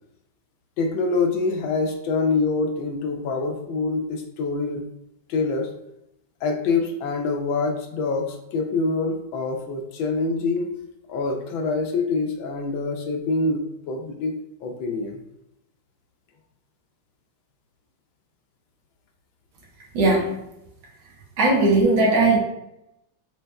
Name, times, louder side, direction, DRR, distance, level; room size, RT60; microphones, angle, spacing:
voice 1, 0.8-4.8 5.3-5.7 6.4-10.7 11.1-14.3 14.6-15.2, left 3 dB, 90° left, 3 dB, 1.5 m, -25 dB
voice 2, 19.9-20.4 21.4-22.4, right 2 dB, 85° right, -2 dB, 1.8 m, -18 dB
6.6 x 3.1 x 2.3 m, 0.84 s
omnidirectional pair, 2.1 m